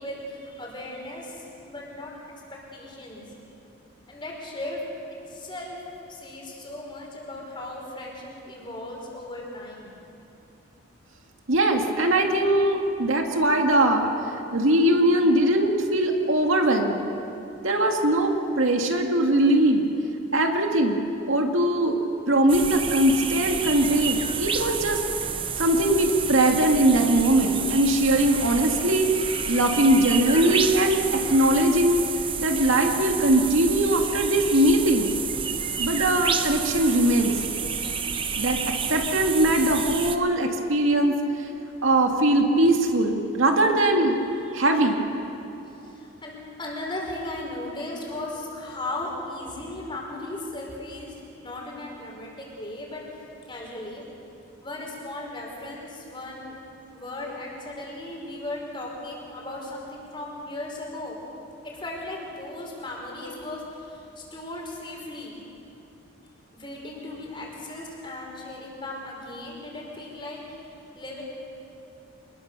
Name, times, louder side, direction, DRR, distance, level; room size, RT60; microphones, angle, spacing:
voice 1, 0.0-2.1 2.5-3.2 4.1-4.8 5.3-5.8 6.1-9.9 45.7-51.1 51.4-53.0 53.5-54.0 54.6-56.5 56.9-61.2 61.6-65.4 66.5-71.2, left 1 dB, 25° left, -2 dB, 4.9 m, -37 dB
voice 2, 11.5-14.1 14.5-17.0 17.6-19.8 20.3-21.0 21.3-22.0 22.3-25.0 25.6-29.1 29.5-32.0 32.4-35.1 35.8-37.4 38.4-41.2 41.8-44.2 44.5-45.0, right 1 dB, 80° right, 3 dB, 2.2 m, -21 dB
sound 1, 22.5-40.2, right 6 dB, 25° right, 0.9 m, -30 dB
26.0 x 20.5 x 6.9 m, 2.8 s
head